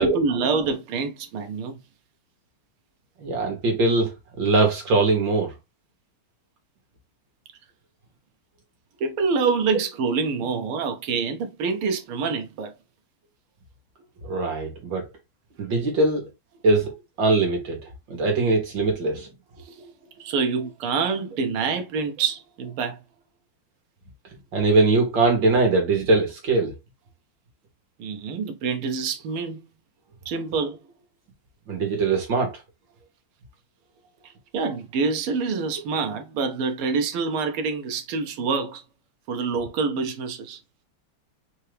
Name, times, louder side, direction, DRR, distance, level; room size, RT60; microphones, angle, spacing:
voice 1, 0.0-1.8 9.0-12.7 19.6-23.0 28.0-29.7 30.2-30.8 34.2-38.8 39.3-40.6, right 5 dB, 90° right, 1.7 m, -26 dB
voice 2, 3.2-4.1 4.4-5.5 14.2-15.1 15.6-16.3 16.6-17.8 18.1-19.3 24.5-26.7 31.7-32.5, right 3 dB, 65° right, 2.2 m, -21 dB
4.4 x 2.8 x 3.2 m
omnidirectional pair, 2.3 m